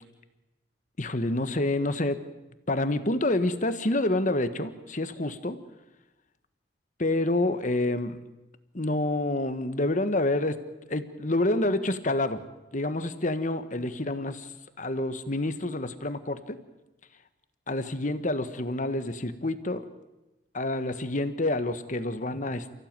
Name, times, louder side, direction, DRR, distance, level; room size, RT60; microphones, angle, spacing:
voice 1, 1.0-2.2 2.7-5.6 7.0-8.2 8.7-10.6 10.9-12.4 12.7-14.5 14.8-16.6 17.7-19.9 20.5-22.7, left 2 dB, 45° left, 11 dB, 1.5 m, -28 dB
29.5 x 15.5 x 9.1 m, 1.0 s
head